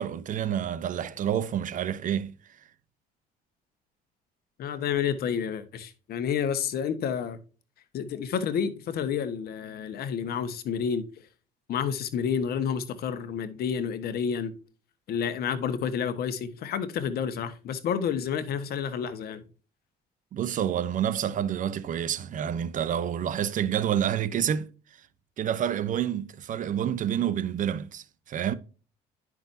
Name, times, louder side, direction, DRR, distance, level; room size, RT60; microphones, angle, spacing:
voice 1, 0.0-2.4 20.3-24.7 25.4-28.5, right 9 dB, 50° right, 0.8 m, -28 dB
voice 2, 4.6-7.4 7.9-11.0 11.7-14.5 15.1-19.4, left 7 dB, 65° left, 1.3 m, -30 dB
10.5 x 6.0 x 2.7 m
cardioid pair, 110°, 17 cm